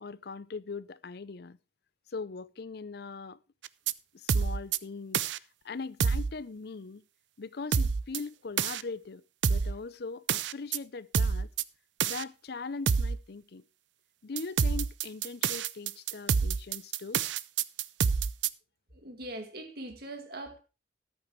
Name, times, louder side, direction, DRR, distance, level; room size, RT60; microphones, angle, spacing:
voice 1, 0.0-1.6 2.1-3.4 4.1-7.0 7.4-11.5 12.0-13.6 14.2-17.2, left 4 dB, 60° left, 0.6 m, -41 dB
sound 1, 3.6-3.9 4.3-4.8 5.1-5.4 6.0-6.3 7.7-8.2 8.6-8.8 9.4-9.7 10.3-10.8 11.1-11.6 12.0-12.2 12.9-13.2 14.4-18.5, right 6 dB, 80° right, 0.5 m, -27 dB
voice 2, 18.9-20.6, right 1 dB, 60° right, 2.3 m, -41 dB
13.5 x 12.0 x 3.1 m
head